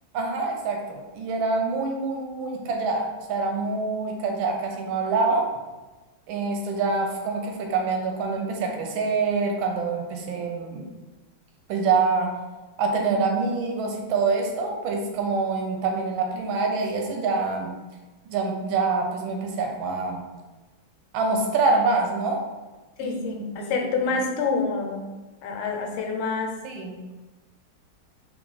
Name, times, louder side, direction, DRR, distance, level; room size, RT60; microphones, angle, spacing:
voice 1, 0.1-5.5 6.3-10.9 11.7-12.3 12.8-17.8 18.3-20.2 21.1-22.4 23.0-23.7 26.6-27.0, right 4 dB, 80° right, 2 dB, 1.3 m, -26 dB
voice 2, 23.0-25.1 25.4-26.5, left 4 dB, 90° left, 3 dB, 1.4 m, -27 dB
3.4 x 2.3 x 3.8 m, 1.2 s
omnidirectional pair, 2.3 m